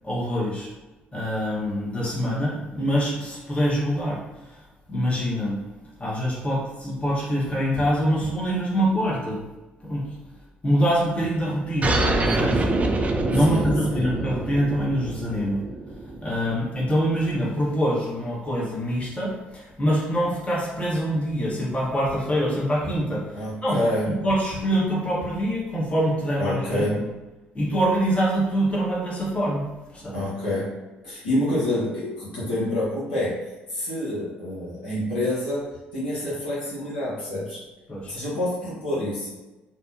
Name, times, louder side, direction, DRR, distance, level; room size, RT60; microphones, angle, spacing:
voice 1, 0.0-0.7 1.1-4.6 4.9-5.6 6.0-9.4 9.8-10.1 10.6-12.0 12.2-12.7 13.3-15.6 16.2-23.8 24.1-27.1 27.5-29.7 29.9-30.2 37.9-38.1, equal, 25° left, -6 dB, 0.9 m, -25 dB
sound 1, 11.8-16.9, right 2 dB, 25° right, 0.4 m, -25 dB
voice 2, 13.3-14.1 23.3-24.1 26.4-27.0 30.1-30.7 31.0-33.4 33.7-37.6 38.0-39.3, left 1 dB, 80° left, -9 dB, 0.7 m, -27 dB
2.6 x 2.1 x 2.4 m, 1.1 s
figure-of-eight pair, 45°, 5 cm